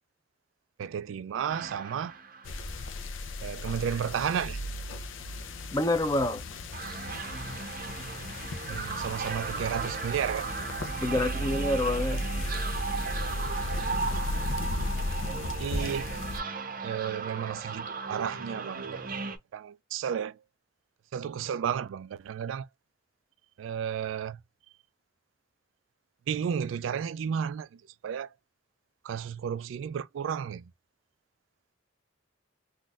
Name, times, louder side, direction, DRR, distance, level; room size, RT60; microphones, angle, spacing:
voice 1, 0.8-2.1 3.4-4.6 8.7-10.5 15.6-16.1 16.8-19.1 19.5-20.4 21.1-22.7 23.6-24.4 26.3-28.3 29.0-30.7, right 8 dB, 80° right, 0.3 m, -33 dB
sound 1, 1.5-2.9 6.7-19.4, right 5 dB, 45° right, 0.6 m, -36 dB
sound 2, 2.4-16.4, left 1 dB, 85° left, 0.6 m, -35 dB
voice 2, 5.7-6.4 11.0-12.2, left 2 dB, 20° left, 0.5 m, -27 dB
3.7 x 2.6 x 2.3 m
head